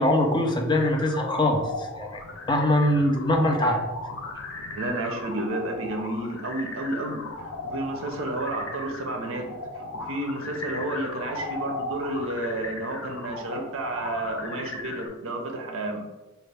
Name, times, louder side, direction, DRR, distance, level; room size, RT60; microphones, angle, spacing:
voice 1, 0.0-2.2 2.5-3.8, left 1 dB, 20° left, 2 dB, 0.5 m, -22 dB
sound 1, 0.7-15.1, left 2 dB, 65° left, 0.6 m, -37 dB
voice 2, 4.6-9.5 9.7-16.0, right 1 dB, 65° right, 3 dB, 0.6 m, -31 dB
4.1 x 2.3 x 3.3 m, 1.1 s
head